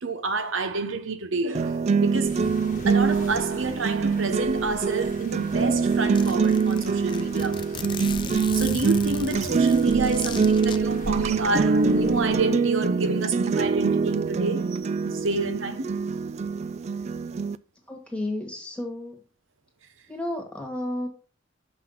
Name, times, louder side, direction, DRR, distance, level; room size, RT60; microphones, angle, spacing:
voice 1, 0.0-2.3 2.8-7.6 8.5-15.9, right 3 dB, 75° right, 1.0 m, -29 dB
sound 1, 1.5-17.5, right 5 dB, 35° right, 0.3 m, -24 dB
sound 2, 2.2-12.5, left 1 dB, 40° left, 1.1 m, -42 dB
Zipper (clothing), 5.4-5.5 5.7-5.8 6.2-10.8, left 5 dB, 25° left, 0.5 m, -37 dB
voice 2, 17.9-19.2 20.1-21.1, left 1 dB, 5° left, 1.8 m, -32 dB
6.1 x 5.7 x 5.7 m
head